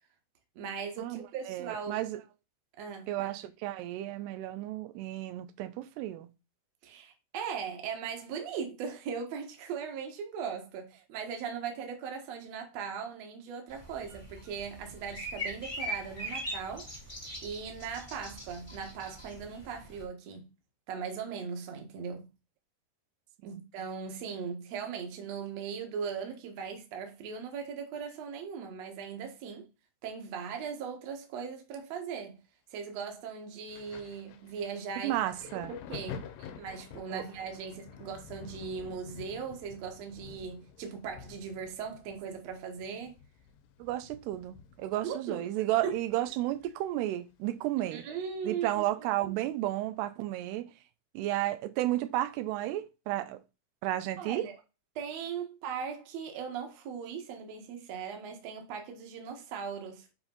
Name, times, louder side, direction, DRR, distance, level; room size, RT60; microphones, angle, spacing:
voice 1, 0.6-2.0 2.8-3.3 6.8-20.5 20.9-22.3 23.4-29.7 30.0-32.4 32.7-35.2 35.4-36.3 36.6-43.2 45.0-45.5 45.8-45.9 47.9-48.8 54.2-54.6 55.0-60.1, right 6 dB, 55° right, 2.1 m, -39 dB
voice 2, 1.5-2.2 3.1-6.3 23.4-23.6 35.0-35.7 37.1-37.2 43.8-48.0 48.5-50.7 51.1-53.4 53.8-54.5, right 14 dB, 85° right, 2.7 m, -32 dB
sound 1, 13.7-20.0, equal, 15° left, 1.2 m, -41 dB
Thunder, 33.7-47.0 47.3-48.7 49.5-49.7, left 7 dB, 85° left, 2.9 m, -49 dB
7.8 x 4.4 x 3.9 m
omnidirectional pair, 4.7 m